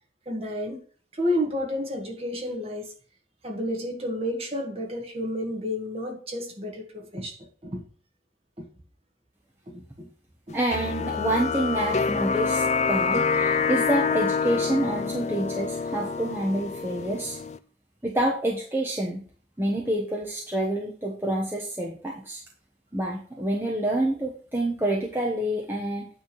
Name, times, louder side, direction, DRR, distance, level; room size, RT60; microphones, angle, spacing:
voice 1, 0.3-0.8 1.1-2.9 3.4-7.8 8.6-8.7 9.7-10.1 10.5-10.6, left 1 dB, 35° right, 1.9 m, -31 dB
voice 2, 10.5-17.4 18.0-19.2 19.6-22.4 22.9-26.1, right 1 dB, 15° right, 1.1 m, -27 dB
sound 1, 10.7-17.6, left 5 dB, 40° left, 0.4 m, -26 dB
9.2 x 3.7 x 6.2 m
head